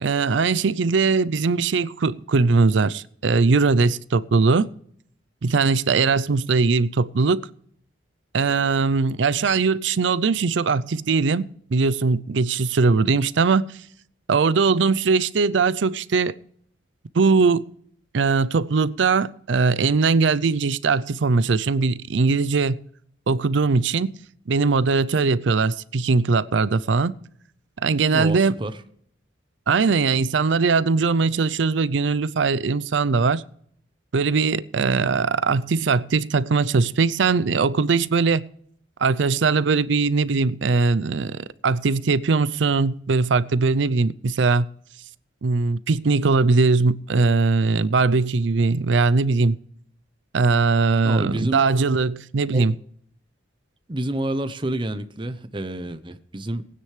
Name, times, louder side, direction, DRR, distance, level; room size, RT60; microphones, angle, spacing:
voice 1, 0.0-4.7 5.4-7.5 8.3-13.7 14.3-16.3 17.1-17.7 18.1-22.8 23.3-24.1 24.5-27.1 27.8-28.6 29.7-33.4 34.1-38.5 39.0-44.7 45.4-49.6 50.3-52.8, right 4 dB, 70° right, 0.5 m, -20 dB
voice 2, 28.1-28.8 51.0-51.6 52.5-52.7 53.9-56.7, right 1 dB, 25° right, 0.8 m, -28 dB
19.0 x 9.6 x 3.2 m
head